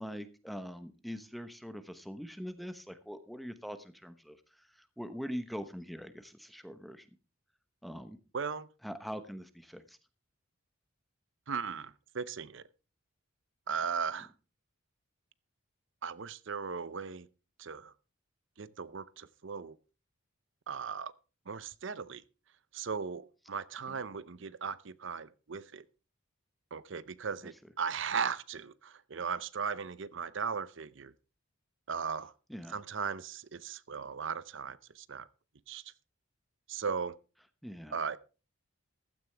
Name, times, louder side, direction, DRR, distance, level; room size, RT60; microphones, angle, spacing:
voice 1, 0.0-7.1 7.8-8.2 8.8-10.0 32.5-32.7 37.6-38.0, equal, ahead, 1.0 m, -43 dB
voice 2, 8.3-8.7 11.5-12.6 13.7-14.3 16.0-17.3 17.6-17.9 18.6-19.8 20.7-21.1 21.5-22.2 22.7-25.8 26.7-31.1 31.9-32.3 32.7-35.3 35.7-35.9 36.7-37.1 37.9-38.2, right 6 dB, 60° right, 0.6 m, -37 dB
15.5 x 13.0 x 3.4 m
head